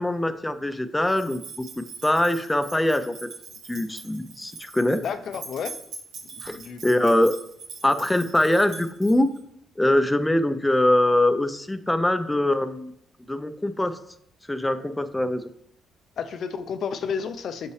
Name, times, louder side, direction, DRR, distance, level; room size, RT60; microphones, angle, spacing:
voice 1, 0.0-3.1 3.7-5.0 6.4-7.3 7.8-9.3 9.8-12.9 13.3-14.0 14.5-15.5, left 1 dB, 10° left, 10 dB, 0.5 m, -23 dB
sound 1, 1.1-9.4, right 4 dB, 85° right, 2.0 m, -42 dB
voice 2, 5.0-5.7 6.5-7.2 16.2-17.7, left 6 dB, 65° left, 10 dB, 0.5 m, -31 dB
6.7 x 5.5 x 3.2 m, 0.70 s
cardioid pair, 90°, 0 cm